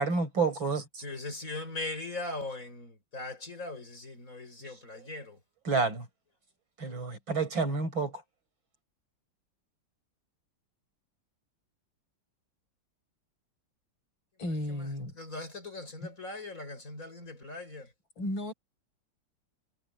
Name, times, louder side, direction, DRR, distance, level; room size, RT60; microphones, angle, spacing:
voice 1, 0.0-1.0 4.9-5.0 5.6-6.1 6.8-8.1, right 4 dB, 85° right, 6.0 m, -29 dB
voice 2, 1.0-5.4 15.2-17.9, left 2 dB, 45° left, 6.1 m, -40 dB
voice 3, 14.4-15.1 16.0-16.1 18.2-18.5, left 1 dB, 85° left, 7.4 m, -34 dB
omnidirectional pair, 2.1 m